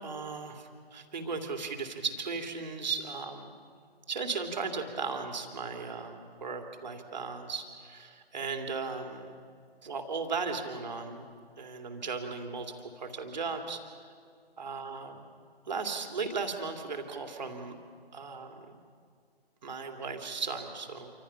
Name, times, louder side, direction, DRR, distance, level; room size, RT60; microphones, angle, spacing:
voice 1, 0.0-3.5 4.1-9.4 9.8-11.3 11.6-13.8 14.6-15.2 15.7-17.8 18.1-18.8 19.6-21.1, right 4 dB, 45° right, 4 dB, 2.7 m, -36 dB
27.5 x 25.5 x 5.7 m, 2.1 s
figure-of-eight pair, 145°, 31 cm